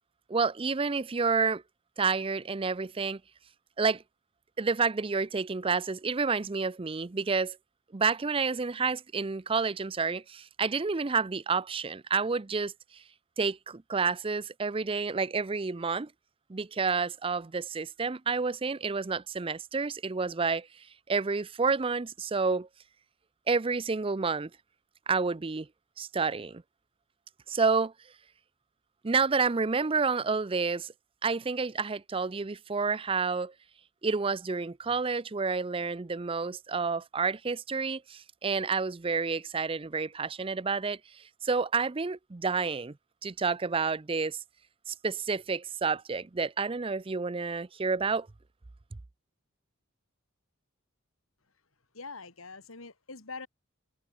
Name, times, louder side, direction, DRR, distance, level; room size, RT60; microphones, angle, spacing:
voice 1, 0.3-1.6 2.0-3.2 3.8-4.0 4.6-7.6 7.9-12.7 13.4-16.1 16.5-20.7 21.1-22.7 23.5-24.5 25.1-25.7 26.0-26.6 27.5-27.9 29.0-30.9 31.2-33.5 34.0-41.0 41.4-42.9 43.2-44.4 44.9-48.3, right 4 dB, 25° right, 0.5 m, -29 dB
voice 2, 51.9-53.5, left 4 dB, 90° left, 2.9 m, -43 dB
head